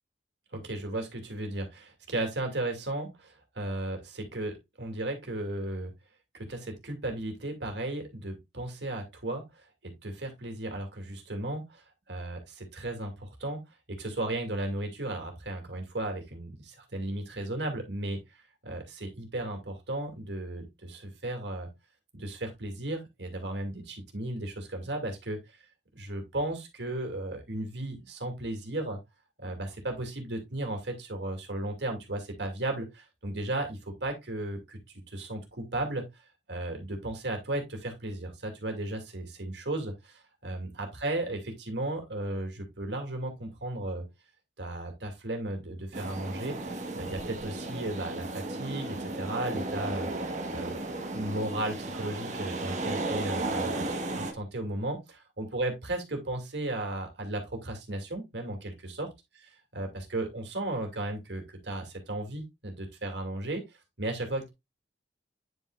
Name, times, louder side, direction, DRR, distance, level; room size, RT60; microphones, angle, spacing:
voice 1, 0.5-5.9 6.3-13.6 13.9-21.7 22.1-25.4 25.9-29.0 29.4-34.8 35.1-36.2 36.5-44.1 44.6-50.1 50.5-50.8 51.1-59.1 59.7-64.5, right 1 dB, 75° right, 2.4 m, -35 dB
sound 1, 45.9-54.3, right 2 dB, 40° right, 1.3 m, -34 dB
9.4 x 5.6 x 2.4 m
head